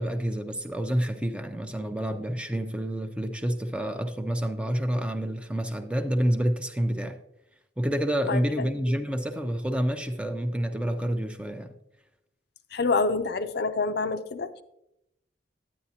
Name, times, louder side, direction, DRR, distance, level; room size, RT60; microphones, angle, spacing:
voice 1, 0.0-7.2 7.8-11.7, equal, 5° right, 0.5 m, -28 dB
voice 2, 8.3-8.7 12.7-14.6, left 3 dB, 55° left, 0.5 m, -27 dB
9.6 x 9.5 x 2.8 m
head